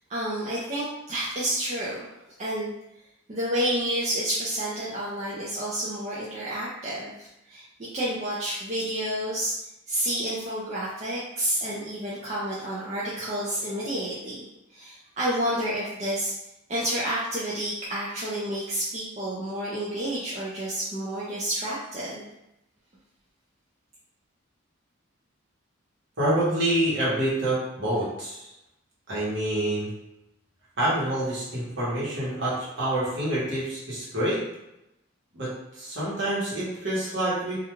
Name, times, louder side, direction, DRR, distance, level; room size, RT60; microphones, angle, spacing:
voice 1, 0.1-2.1 2.4-2.7 3.3-7.6 7.9-9.6 9.9-16.3 16.7-22.2, right 1 dB, 35° right, -8 dB, 0.4 m, -30 dB
voice 2, 26.2-28.5 29.1-29.9 30.8-34.4 35.3-37.6, right 1 dB, 60° right, -7 dB, 1.1 m, -27 dB
2.4 x 2.2 x 3.0 m, 0.89 s
head